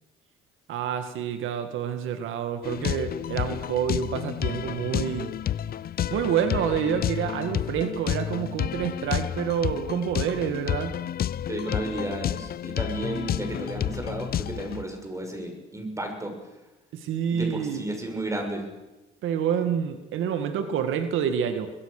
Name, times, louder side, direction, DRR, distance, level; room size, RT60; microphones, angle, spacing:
voice 1, 0.7-5.3 6.1-10.9 16.9-17.8 19.2-21.7, right 8 dB, 75° right, 8 dB, 2.0 m, -28 dB
sound 1, 2.6-14.8, left 10 dB, 50° left, 0.7 m, -30 dB
voice 2, 11.5-16.3 17.3-18.7, right 1 dB, 15° right, 4 dB, 6.7 m, -33 dB
24.5 x 21.5 x 6.7 m, 1.1 s
cardioid pair, 105°, 21 cm